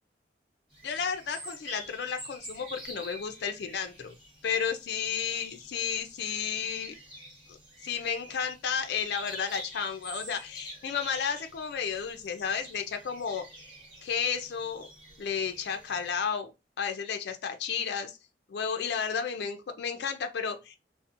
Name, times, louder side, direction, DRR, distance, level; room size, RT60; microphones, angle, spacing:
sound 1, 0.7-16.3, right 1 dB, 30° right, 1.3 m, -48 dB
voice 1, 0.8-4.1 4.4-7.0 7.5-7.6 7.8-13.7 14.0-14.9 15.2-16.5 16.8-18.2 18.5-20.7, left 6 dB, 65° left, 0.4 m, -32 dB
2.7 x 2.0 x 2.4 m
head